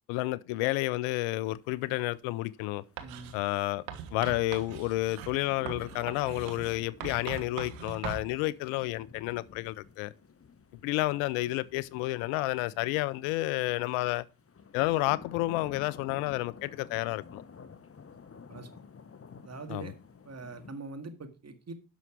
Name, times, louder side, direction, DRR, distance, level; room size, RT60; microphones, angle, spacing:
voice 1, 0.1-2.8 3.3-3.8 4.1-10.1 10.8-14.2 14.7-17.4 19.7-19.9, left 19 dB, 80° left, 0.6 m, -30 dB
sound 1, 1.1-20.7, left 5 dB, 30° left, 1.1 m, -52 dB
voice 2, 3.0-3.3 18.3-18.8 19.4-19.9 20.3-21.7, right 3 dB, 30° right, 2.0 m, -43 dB
Writing, 3.0-3.4 3.9-8.3, right 8 dB, 80° right, 1.5 m, -41 dB
11.5 x 6.1 x 4.7 m
hypercardioid pair, 55°, 48 cm